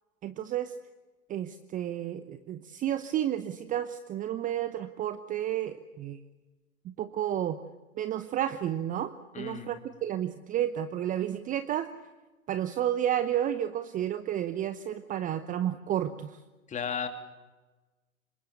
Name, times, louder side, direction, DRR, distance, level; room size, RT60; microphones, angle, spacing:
voice 1, 0.2-0.7 1.3-6.2 6.8-7.6 8.0-11.9 12.5-16.4, right 11 dB, 20° right, 12 dB, 0.9 m, -31 dB
voice 2, 9.3-9.7 16.7-17.1, left 7 dB, 15° left, 7 dB, 3.0 m, -34 dB
26.5 x 22.5 x 8.1 m, 1.2 s
figure-of-eight pair, 105°, 41 cm